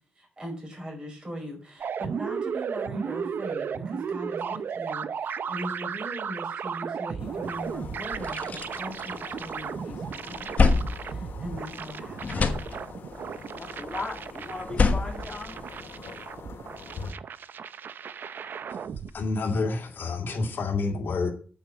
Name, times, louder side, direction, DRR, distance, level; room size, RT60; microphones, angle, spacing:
voice 1, 0.1-12.5, equal, 25° right, 0 dB, 4.9 m, -40 dB
sound 1, 1.8-19.1, right 7 dB, 55° right, 0.6 m, -35 dB
sound 2, 7.2-17.1, left 4 dB, 90° left, 2.3 m, -44 dB
sound 3, 7.6-7.7 8.0-9.7 10.1-11.9 12.2-13.2 14.5-16.2, left 4 dB, 40° left, 1.3 m, -27 dB
voice 2, 13.5-15.6, left 3 dB, 20° left, 2 dB, 1.7 m, -37 dB
voice 3, 19.1-21.3, left 3 dB, 60° left, 1 dB, 2.3 m, -28 dB
9.1 x 6.1 x 7.2 m, 0.40 s
wide cardioid pair, 155°, 4 cm